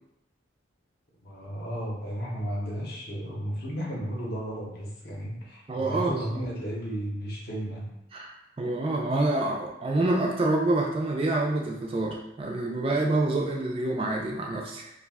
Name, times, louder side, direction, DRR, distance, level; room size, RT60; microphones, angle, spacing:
voice 1, 1.2-7.9, equal, 55° left, -4 dB, 0.7 m, -34 dB
voice 2, 5.7-6.2 8.1-14.9, right 2 dB, 30° right, -1 dB, 0.3 m, -27 dB
2.4 x 2.2 x 3.4 m, 0.84 s
head